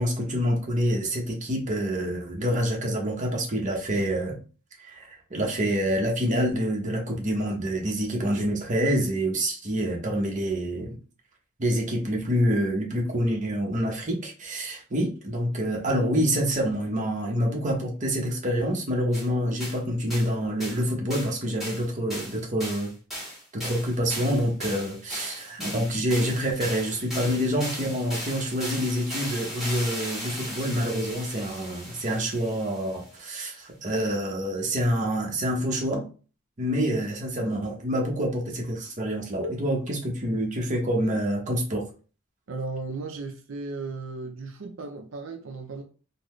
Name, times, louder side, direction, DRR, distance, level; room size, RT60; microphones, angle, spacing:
voice 1, 0.0-4.4 4.8-11.0 11.6-22.9 23.5-36.1 36.6-41.8, equal, 40° right, 0.9 m, -27 dB
sound 1, 19.1-19.3 19.6-19.8 20.1-20.3 20.6-20.8 21.1-21.4 21.6-33.1, equal, ahead, 1.8 m, -37 dB
voice 2, 42.5-45.8, right 3 dB, 85° right, 0.5 m, -35 dB
3.8 x 2.1 x 3.1 m
head